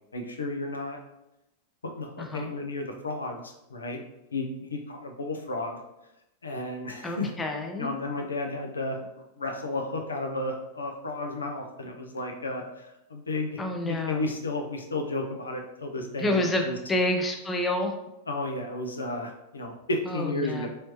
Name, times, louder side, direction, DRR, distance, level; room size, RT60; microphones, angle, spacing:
voice 1, 0.1-1.0 1.9-4.0 4.3-5.8 6.4-7.3 7.8-16.8 18.3-20.7, left 2 dB, 75° left, 3 dB, 0.5 m, -33 dB
voice 2, 2.2-2.5 7.0-7.9 13.6-14.2 16.2-17.9 20.1-20.7, left 1 dB, 15° left, 4 dB, 0.5 m, -28 dB
4.1 x 3.2 x 3.0 m, 0.89 s
figure-of-eight pair, 90°, 0 cm